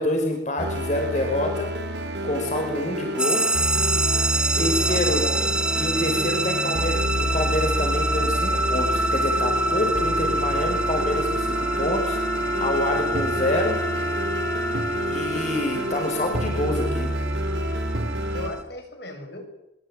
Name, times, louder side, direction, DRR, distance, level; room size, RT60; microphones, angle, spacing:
voice 1, 0.0-1.7 2.2-3.4 4.6-5.2 5.8-12.2 12.6-13.8 15.0-17.1, left 1 dB, 40° left, 3 dB, 5.4 m, -27 dB
sound 1, 0.6-18.5, equal, 80° right, 4.0 m, -29 dB
sound 2, 3.2-18.6, right 2 dB, 5° right, 1.8 m, -27 dB
voice 2, 4.5-5.5 18.3-19.4, left 1 dB, 70° left, 5 dB, 7.3 m, -36 dB
Wind instrument woodwind instrument, 8.7-17.7, equal, 10° left, 1.1 m, -31 dB
25.0 x 23.0 x 9.1 m, 0.81 s
head